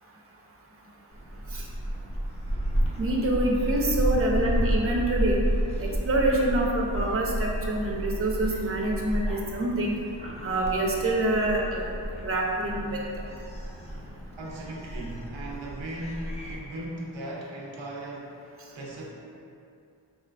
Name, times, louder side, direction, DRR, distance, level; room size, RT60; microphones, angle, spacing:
Gull seagull, 1.1-16.6, right 1 dB, 15° left, 0.6 m, -31 dB
voice 1, 3.0-5.4 5.8-9.9 10.4-11.8 12.2-13.0, right 1 dB, 30° right, -2 dB, 0.6 m, -26 dB
voice 2, 14.4-19.1, right 1 dB, 90° right, -2 dB, 0.6 m, -38 dB
4.2 x 3.2 x 2.4 m, 2.5 s
wide cardioid pair, 40°, 45 cm